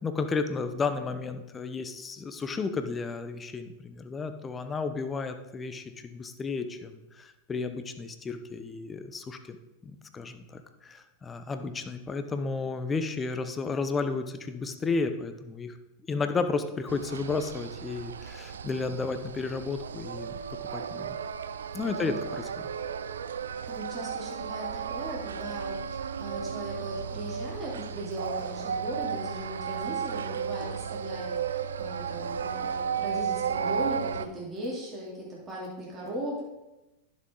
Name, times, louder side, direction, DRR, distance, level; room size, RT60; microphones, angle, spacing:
voice 1, 0.0-9.6 9.8-15.8 16.1-20.3 20.7-21.2 21.7-22.5, left 4 dB, 20° left, 9 dB, 0.8 m, -33 dB
sound 1, 16.9-34.3, right 7 dB, 80° right, 0.4 m, -34 dB
voice 2, 21.8-22.2 23.6-36.4, right 1 dB, 25° right, -5 dB, 3.3 m, -38 dB
11.0 x 6.4 x 4.0 m, 1.0 s
hypercardioid pair, 95°, 0 cm